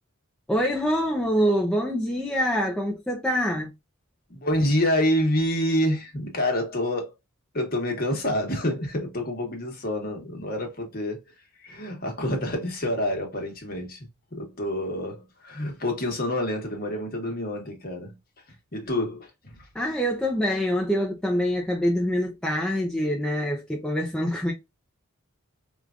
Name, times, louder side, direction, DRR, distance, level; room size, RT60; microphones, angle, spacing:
voice 1, 0.5-3.7 19.7-24.5, equal, 5° left, 0.5 m, -25 dB
voice 2, 4.3-7.1 7.5-11.2 11.6-18.2 18.7-19.6, left 1 dB, 45° left, 1.2 m, -27 dB
4.8 x 2.4 x 2.4 m
head